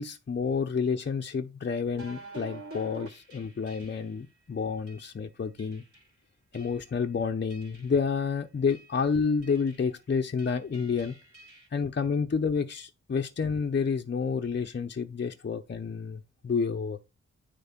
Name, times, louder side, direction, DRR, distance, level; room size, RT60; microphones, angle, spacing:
voice 1, 0.0-5.8 6.5-11.1 11.7-17.0, left 5 dB, 35° left, 0.7 m, -29 dB
sound 1, 1.9-4.2 4.9-5.1 5.6-6.1 6.5-7.0 7.5-8.1 8.7-9.0 9.4-10.0 10.4-11.7, right 2 dB, 45° right, 3.5 m, -48 dB
9.4 x 3.3 x 5.8 m
cardioid pair, 45°, 30 cm